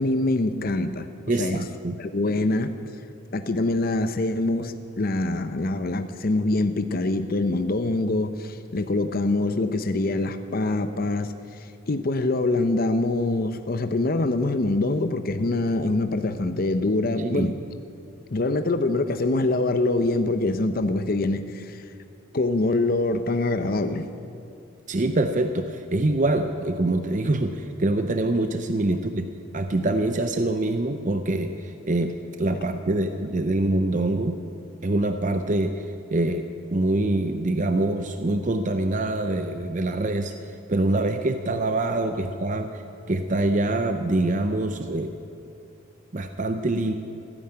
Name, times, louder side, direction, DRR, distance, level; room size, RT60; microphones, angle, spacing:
voice 1, 0.0-1.1 1.4-1.6 2.0-2.9 3.3-17.6 18.3-21.8 22.3-24.1, left 2 dB, 45° left, 9 dB, 0.6 m, -24 dB
voice 2, 1.3-2.0 17.2-17.5 24.9-29.3 29.5-32.1 32.4-34.4 34.8-35.9 36.1-42.8 43.1-45.1 46.1-46.9, right 2 dB, 35° right, 7 dB, 0.6 m, -25 dB
15.0 x 10.0 x 8.7 m, 2.6 s
head